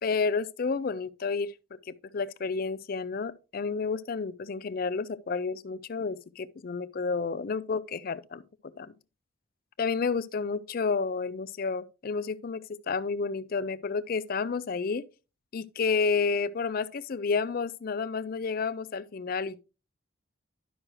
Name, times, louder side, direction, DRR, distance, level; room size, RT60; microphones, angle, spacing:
voice 1, 0.0-1.5 1.9-8.4 8.8-8.9 9.8-15.0 15.5-19.6, left 4 dB, 45° left, 0.4 m, -30 dB
11.0 x 6.3 x 3.0 m
head